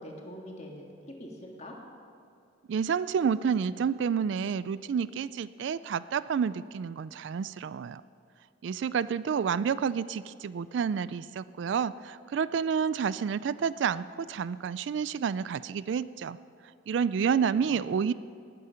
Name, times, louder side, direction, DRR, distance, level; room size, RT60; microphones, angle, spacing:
voice 1, 0.0-1.8 17.3-18.0, equal, 35° left, 0 dB, 1.9 m, -44 dB
voice 2, 2.7-8.0 8.6-16.4 16.9-18.1, right 7 dB, 65° right, 17 dB, 0.3 m, -29 dB
18.5 x 8.7 x 5.7 m, 2.5 s
head